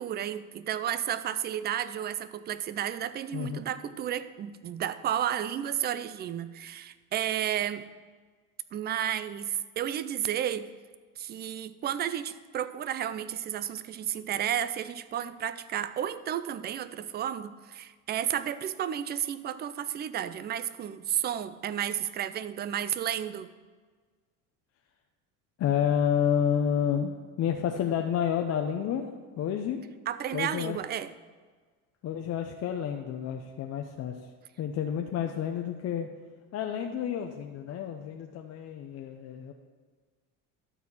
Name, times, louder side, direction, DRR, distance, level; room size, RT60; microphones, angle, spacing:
voice 1, 0.0-7.8 8.7-10.7 11.2-23.5 30.1-31.1, right 10 dB, 30° right, 14 dB, 0.4 m, -32 dB
voice 2, 3.3-3.6 25.6-29.1 29.4-29.8 30.3-30.8 32.0-34.1 34.6-36.1 36.5-39.5, left 8 dB, 45° left, 4 dB, 0.7 m, -30 dB
12.0 x 4.3 x 7.1 m, 1.5 s
cardioid pair, 125°, 36 cm